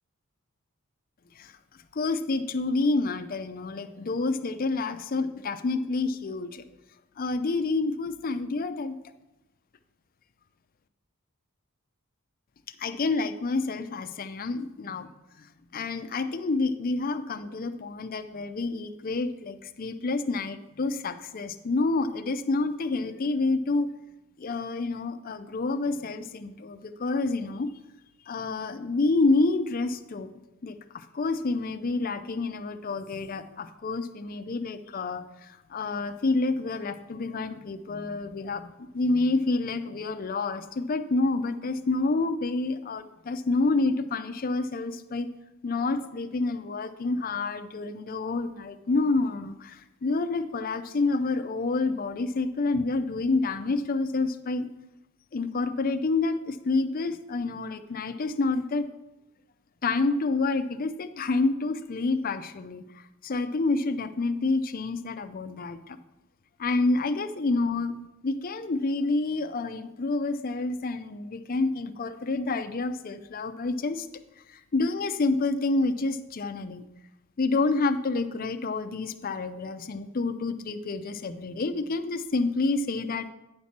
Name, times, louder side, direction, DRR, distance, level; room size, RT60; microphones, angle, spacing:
voice 1, 1.9-6.6 7.2-9.0 12.8-15.1 15.4-15.5 15.7-23.9 24.4-27.7 28.3-30.3 30.6-45.3 45.6-54.7 55.3-58.9 59.8-66.0 66.6-74.1 74.5-76.9 77.4-83.3, left 3 dB, 40° left, 10 dB, 0.5 m, -28 dB
9.5 x 4.2 x 5.9 m, 0.95 s
head